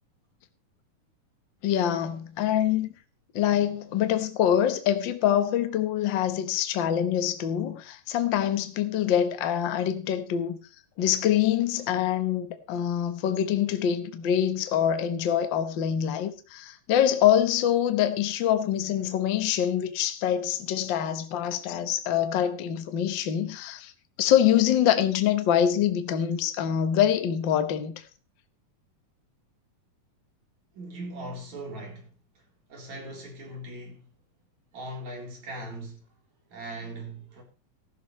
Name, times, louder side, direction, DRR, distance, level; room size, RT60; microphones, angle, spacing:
voice 1, 1.6-2.9 3.3-10.6 11.0-23.9 24.2-27.9, left 10 dB, 70° left, 1.1 m, -25 dB
voice 2, 30.7-32.1 32.3-32.4 32.7-34.0 34.7-36.1 36.5-37.4, right 1 dB, 55° right, 5.0 m, -39 dB
14.5 x 12.5 x 3.2 m
omnidirectional pair, 3.9 m